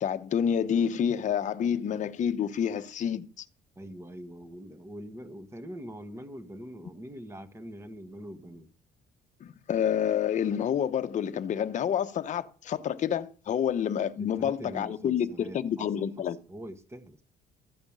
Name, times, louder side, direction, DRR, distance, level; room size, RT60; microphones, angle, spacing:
voice 1, 0.0-3.4 9.4-16.4, left 8 dB, 45° left, 0.9 m, -28 dB
voice 2, 3.7-8.7 14.4-17.2, equal, 15° right, 1.4 m, -43 dB
14.0 x 5.2 x 8.8 m
cardioid pair, 110°, 17 cm